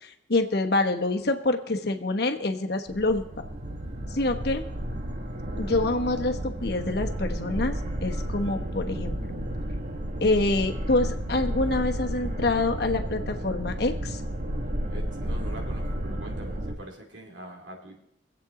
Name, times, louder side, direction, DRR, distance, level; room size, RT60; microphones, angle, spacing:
voice 1, 0.0-3.4 4.1-4.6 5.6-9.3 10.2-14.2, left 2 dB, 60° left, 4 dB, 1.1 m, -26 dB
sound 1, 2.9-16.7, right 1 dB, 45° right, 1.1 m, -32 dB
voice 2, 14.9-18.0, right 1 dB, 90° right, 1 dB, 2.6 m, -43 dB
24.5 x 8.3 x 3.8 m, 0.75 s
head